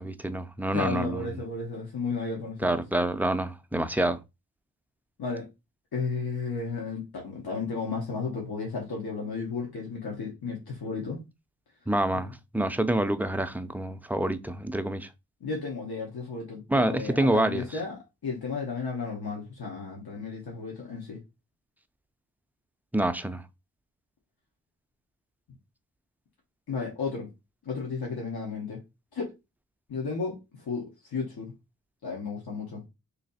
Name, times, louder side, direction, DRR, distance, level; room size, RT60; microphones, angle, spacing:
voice 1, 0.0-1.2 2.6-4.2 11.9-15.1 16.7-17.6 22.9-23.4, right 1 dB, 5° right, 0.3 m, -27 dB
voice 2, 0.7-2.8 5.2-5.5 5.9-11.2 15.4-21.2 26.7-27.3 27.6-28.8 29.1-29.3 29.9-30.8 31.1-31.5 32.0-32.8, left 4 dB, 90° left, 1.2 m, -33 dB
3.2 x 2.7 x 4.0 m
wide cardioid pair, 115°, 37 cm